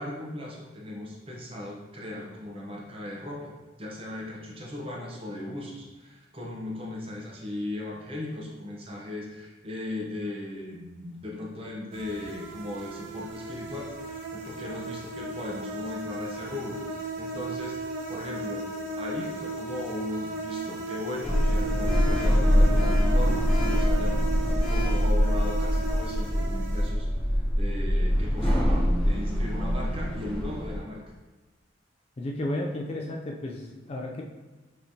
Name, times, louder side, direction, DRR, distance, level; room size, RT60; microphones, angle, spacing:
voice 1, 0.0-3.5 3.8-17.8 18.1-18.6 19.0-24.2 24.7-31.0, left 1 dB, 30° right, -2 dB, 0.7 m, -37 dB
sound 1, 11.9-26.9, right 1 dB, 80° right, 0.7 m, -35 dB
Sliding door, 21.2-30.8, equal, 5° left, 1.3 m, -24 dB
voice 2, 32.2-34.2, left 1 dB, 30° left, 0 dB, 0.3 m, -33 dB
5.2 x 3.1 x 2.7 m, 1.2 s
head